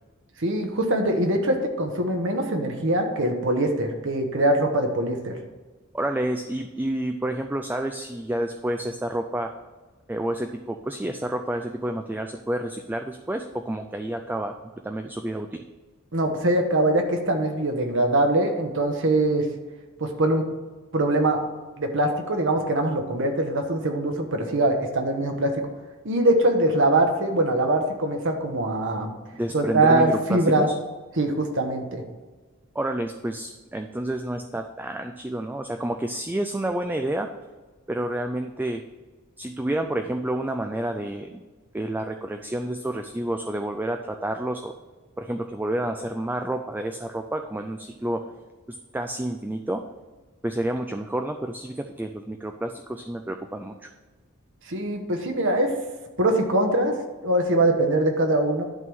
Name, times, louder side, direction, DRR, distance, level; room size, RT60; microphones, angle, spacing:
voice 1, 0.4-5.4 16.1-19.5 20.0-20.4 20.9-21.4 21.8-25.6 26.0-29.1 29.5-30.7 31.2-32.0 54.6-55.7 56.2-56.9 57.2-58.6, right 1 dB, 60° right, 4 dB, 1.3 m, -22 dB
voice 2, 5.9-9.5 10.1-14.5 14.8-15.6 29.3-30.7 32.7-37.3 37.9-38.8 39.4-41.4 41.7-44.7 45.2-48.2 48.7-49.8 50.4-53.9, right 1 dB, 10° right, 5 dB, 0.3 m, -29 dB
11.0 x 3.7 x 6.2 m, 1.3 s
head